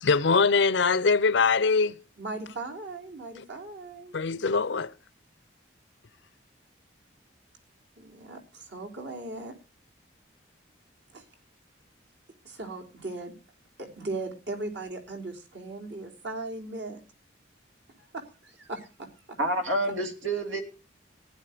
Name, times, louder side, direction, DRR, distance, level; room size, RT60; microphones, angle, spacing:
voice 1, 0.0-2.0 4.1-4.9, left 4 dB, 70° left, 0.6 m, -22 dB
voice 2, 2.2-4.1 8.0-9.6 11.1-11.3 12.4-13.3 13.8-17.0 18.0-19.4 19.9-20.0, right 2 dB, 65° right, 3.6 m, -38 dB
voice 3, 19.4-20.6, right 1 dB, 85° right, 3.3 m, -28 dB
15.5 x 10.5 x 5.0 m
head